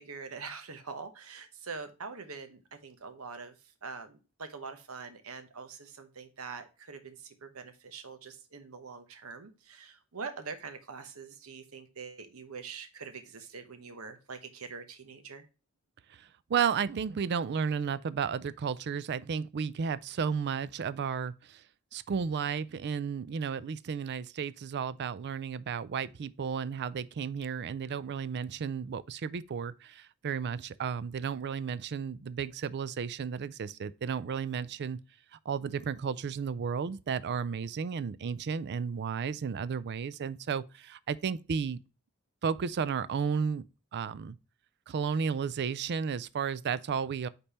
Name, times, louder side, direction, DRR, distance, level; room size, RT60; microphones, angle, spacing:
voice 1, 0.0-15.5, right 5 dB, 90° right, 1.1 m, -44 dB
voice 2, 16.2-21.6 21.9-35.0 35.5-41.8 42.4-43.6 43.9-44.4 44.9-47.3, right 6 dB, 55° right, 0.4 m, -33 dB
5.3 x 4.3 x 4.2 m
head